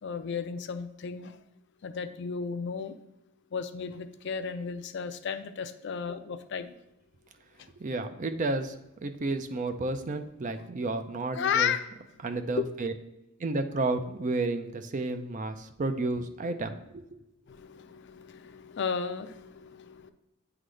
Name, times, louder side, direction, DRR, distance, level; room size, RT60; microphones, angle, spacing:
voice 1, 0.0-1.4 1.8-3.0 3.5-6.7 7.6-7.7 11.3-11.8 12.6-12.7 17.5-20.1, left 6 dB, 55° left, 10 dB, 0.4 m, -33 dB
voice 2, 7.8-11.7 12.2-12.9 13.4-17.0, right 2 dB, 35° right, 8 dB, 0.5 m, -31 dB
9.1 x 3.8 x 3.2 m, 0.89 s
head